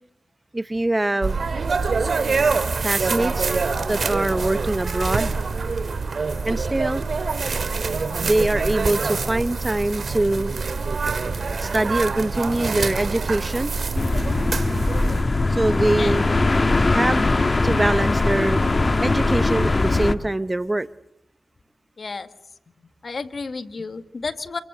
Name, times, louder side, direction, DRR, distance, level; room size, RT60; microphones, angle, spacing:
voice 1, 0.5-1.5 2.8-3.5 3.9-5.3 6.4-7.0 8.2-10.5 11.6-13.7 15.5-16.2 16.9-17.3 17.6-18.6 19.0-20.9, right 1 dB, 25° right, 0.9 m, -23 dB
sound 1, 1.2-15.2, right 4 dB, 65° right, 2.4 m, -25 dB
sound 2, 13.9-20.1, left 3 dB, 40° left, 1.5 m, -20 dB
voice 2, 22.0-22.3 23.0-24.6, left 4 dB, 60° left, 1.7 m, -31 dB
27.0 x 23.5 x 7.9 m
cardioid pair, 50°, 0 cm